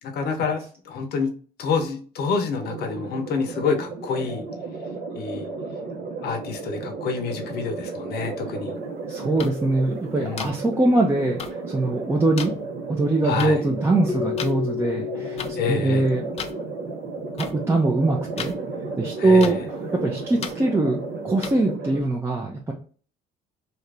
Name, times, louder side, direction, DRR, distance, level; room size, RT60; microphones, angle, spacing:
voice 1, 0.0-1.3 1.6-4.4 5.2-5.5 6.2-8.8 10.2-10.6 13.2-13.6 15.5-16.1 19.2-19.6, left 5 dB, 70° left, 4 dB, 0.7 m, -27 dB
sound 1, 2.5-22.0, right 3 dB, 70° right, 0.9 m, -34 dB
voice 2, 9.1-12.5 12.9-15.4 15.7-16.3 17.4-18.5 19.0-19.6 20.0-22.7, right 2 dB, 15° right, -1 dB, 0.5 m, -22 dB
sound 2, 9.4-9.5 10.4-10.5 11.4-11.5 12.4-12.5 13.4-13.5 14.4-14.5 15.4-15.5 16.4-16.5 17.4-17.5 18.4-18.5 19.4-19.5 20.4-20.5 21.4-21.5, left 7 dB, 40° left, 0.4 m, -32 dB
Keyboard (musical), 14.1-16.9, left 13 dB, 20° left, 0.9 m, -32 dB
2.8 x 2.5 x 3.2 m, 0.41 s
cardioid pair, 110°, 17 cm